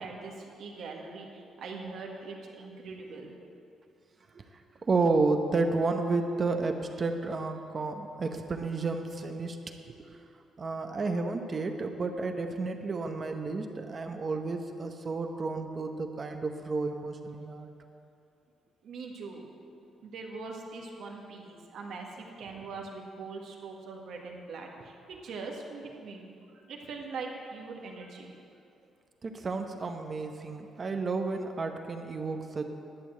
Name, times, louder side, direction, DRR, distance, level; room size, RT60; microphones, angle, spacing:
voice 1, 0.0-3.3 18.8-19.5 20.0-26.2 26.5-28.3, right 4 dB, 70° right, 0 dB, 1.7 m, -42 dB
voice 2, 4.8-9.6 9.9-10.1 10.6-17.7 29.2-32.7, right 3 dB, 35° right, 5 dB, 0.8 m, -31 dB
11.5 x 7.0 x 7.6 m, 2.6 s
cardioid pair, 125°, 0 cm